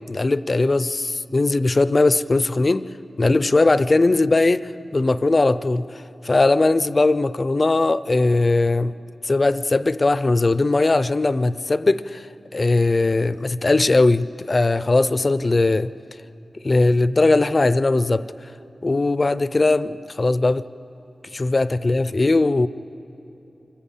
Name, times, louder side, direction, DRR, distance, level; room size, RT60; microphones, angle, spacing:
voice 1, 0.1-2.9 3.2-5.9 6.2-8.9 9.2-12.2 12.5-15.9 16.6-18.2 18.8-20.6 21.3-22.7, left 2 dB, 35° left, 15 dB, 0.4 m, -19 dB
25.0 x 14.5 x 8.4 m, 2.9 s
wide cardioid pair, 125°, 0 cm